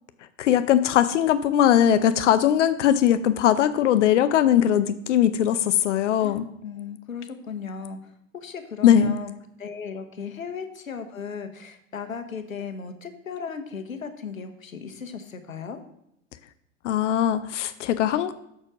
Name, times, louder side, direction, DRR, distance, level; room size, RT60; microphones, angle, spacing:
voice 1, 0.4-6.5 8.8-9.1 16.8-18.3, left 10 dB, 65° left, 12 dB, 0.6 m, -20 dB
voice 2, 6.2-9.3 9.6-15.8, left 6 dB, 85° left, 8 dB, 1.1 m, -36 dB
6.4 x 6.4 x 6.0 m, 0.79 s
figure-of-eight pair, 85°, 40 cm